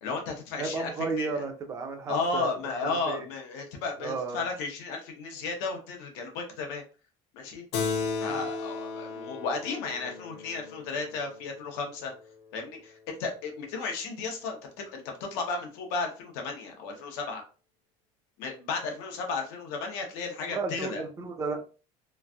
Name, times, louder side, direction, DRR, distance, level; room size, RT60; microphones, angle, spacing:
voice 1, 0.0-1.4 2.1-6.8 7.3-7.6 8.2-12.1 12.5-14.6 14.9-17.4 18.4-21.0, left 4 dB, 90° left, 2 dB, 0.9 m, -34 dB
voice 2, 0.6-2.5 2.8-3.3 4.0-4.4 8.3-8.4 20.5-21.6, right 4 dB, 25° right, 4 dB, 0.4 m, -33 dB
Keyboard (musical), 7.7-12.6, left 4 dB, 50° left, 0.5 m, -35 dB
3.1 x 2.5 x 2.3 m, 0.36 s
cardioid pair, 170°, 13 cm